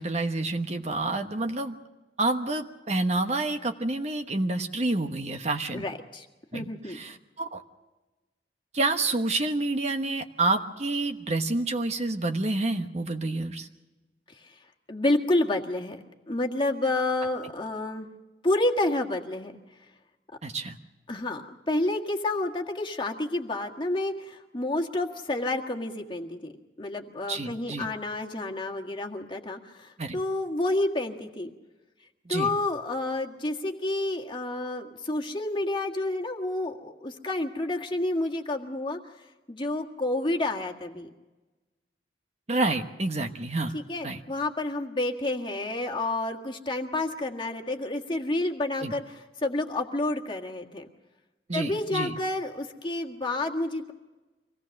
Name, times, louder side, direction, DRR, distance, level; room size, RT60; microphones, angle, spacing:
voice 1, 0.0-1.8 2.2-5.8 6.5-7.6 8.7-13.7 20.4-20.8 27.3-27.9 30.0-30.2 32.3-32.5 42.5-44.2 48.8-48.9 51.5-52.1, right 2 dB, 40° right, 5 dB, 1.1 m, -28 dB
voice 2, 5.7-6.3 6.5-7.0 14.9-18.1 18.4-19.5 21.1-26.5 26.8-31.5 32.3-39.0 39.5-41.1 43.7-50.9 51.5-53.9, left 2 dB, 30° left, 2 dB, 1.7 m, -29 dB
25.0 x 18.0 x 6.5 m, 1.1 s
head